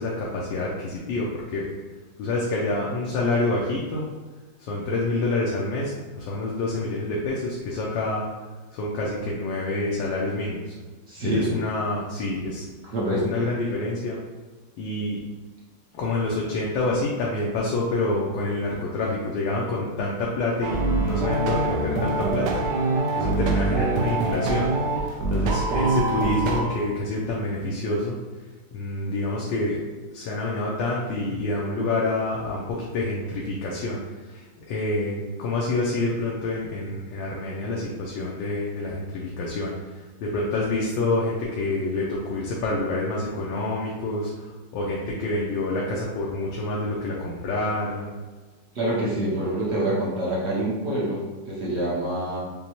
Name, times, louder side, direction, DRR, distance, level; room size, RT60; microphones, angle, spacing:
voice 1, 0.0-1.7 2.2-4.1 4.6-8.2 8.7-10.7 11.2-12.6 13.1-14.2 14.8-15.2 15.9-22.6 23.1-28.2 28.7-29.8 30.1-34.0 34.3-48.1, left 2 dB, 80° left, -4 dB, 1.3 m, -27 dB
voice 2, 11.1-11.5 12.8-13.4 48.7-52.4, right 1 dB, 55° right, -6 dB, 0.8 m, -26 dB
sound 1, 20.6-26.6, right 2 dB, 75° right, 1.2 m, -24 dB
5.2 x 2.1 x 2.9 m, 1.3 s
omnidirectional pair, 2.1 m